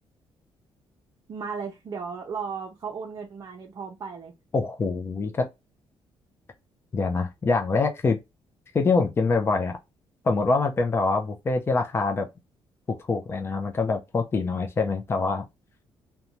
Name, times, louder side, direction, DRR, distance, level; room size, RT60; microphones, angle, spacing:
voice 1, 1.3-4.3, right 5 dB, 40° right, 0.6 m, -35 dB
voice 2, 4.5-5.5 6.9-8.2 8.7-9.7 10.2-12.3 13.1-15.4, left 3 dB, 25° left, 0.5 m, -24 dB
2.6 x 2.2 x 2.9 m
cardioid pair, 125°, 10 cm